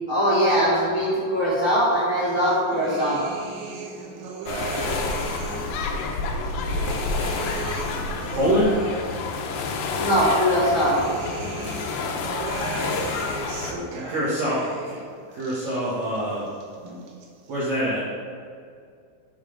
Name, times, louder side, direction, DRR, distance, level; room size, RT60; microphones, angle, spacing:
voice 1, 0.1-3.2 9.9-11.0, equal, 45° left, -12 dB, 1.6 m, -21 dB
sound 1, 2.2-5.8 6.3-9.7 10.2-15.0 15.3-16.2 16.5-17.3, right 4 dB, 85° right, 3.4 m, -36 dB
sound 2, 4.5-13.7, left 4 dB, 85° left, 2.5 m, -29 dB
voice 2, 8.3-8.8 13.6-15.0 15.3-16.5 16.8-17.0 17.5-18.0, equal, 65° right, -9 dB, 1.8 m, -25 dB
7.3 x 5.7 x 5.1 m, 2.2 s
omnidirectional pair, 5.4 m